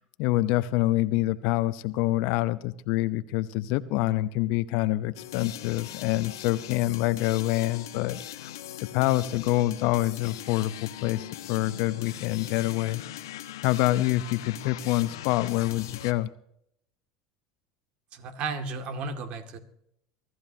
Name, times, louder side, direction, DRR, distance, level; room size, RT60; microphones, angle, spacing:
voice 1, 0.0-8.5 8.9-13.0 13.6-16.3, left 17 dB, 65° left, 15 dB, 0.7 m, -26 dB
sound 1, 5.1-16.1, left 12 dB, 80° left, 1.1 m, -40 dB
voice 2, 18.1-19.6, right 4 dB, 55° right, 7 dB, 2.2 m, -34 dB
23.5 x 14.0 x 2.8 m, 0.74 s
hypercardioid pair, 80°, 2 cm